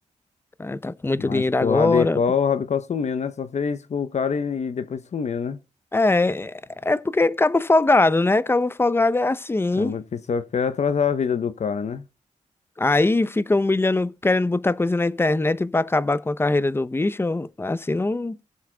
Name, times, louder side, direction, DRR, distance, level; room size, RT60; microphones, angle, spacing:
voice 1, 0.6-2.2 5.9-9.9 12.8-18.4, left 2 dB, 15° left, 0.6 m, -21 dB
voice 2, 1.2-5.6 9.8-12.0, left 6 dB, 60° left, 0.8 m, -25 dB
18.5 x 7.3 x 2.2 m
wide cardioid pair, 95°, 13 cm